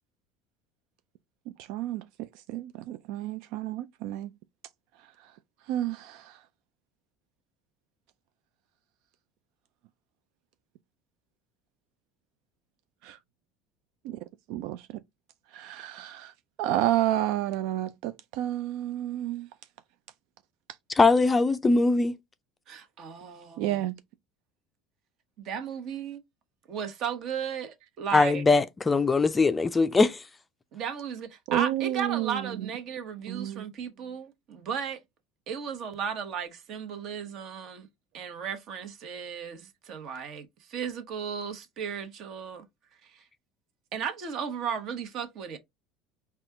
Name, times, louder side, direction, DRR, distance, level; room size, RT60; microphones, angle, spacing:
voice 1, 1.6-4.3 5.7-6.4 13.0-13.2 14.0-14.2 14.5-14.9 15.5-16.3 16.6-19.5 23.6-24.0 31.5-32.7 33.3-33.7, right 13 dB, 70° right, 0.3 m, -30 dB
voice 2, 20.9-22.2 28.1-30.2, left 3 dB, 15° left, 0.4 m, -21 dB
voice 3, 22.7-23.8 25.4-26.2 26.7-28.4 30.7-35.0 35.5-37.9 38.1-42.7 43.0-43.2 43.9-45.6, right 7 dB, 55° right, 1.1 m, -35 dB
4.2 x 2.4 x 3.6 m
supercardioid pair, 115°, 0 cm